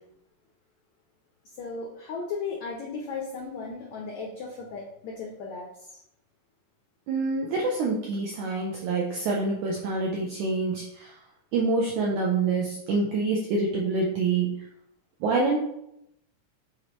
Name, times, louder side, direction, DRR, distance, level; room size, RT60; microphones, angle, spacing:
voice 1, 1.6-6.0, left 4 dB, 85° left, -1 dB, 1.6 m, -36 dB
voice 2, 7.1-11.1 11.5-14.5 15.2-15.6, right 3 dB, 80° right, -2 dB, 1.7 m, -26 dB
8.3 x 4.2 x 3.0 m, 0.80 s
omnidirectional pair, 4.3 m